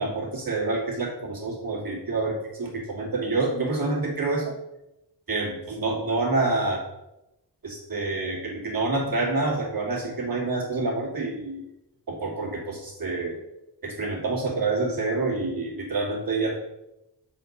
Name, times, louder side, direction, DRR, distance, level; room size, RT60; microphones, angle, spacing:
voice 1, 0.0-4.5 5.3-6.8 7.6-11.6 12.1-13.4 13.8-16.5, right 3 dB, 55° right, -3 dB, 2.4 m, -27 dB
7.6 x 4.5 x 5.4 m, 0.90 s
wide cardioid pair, 135°, 43 cm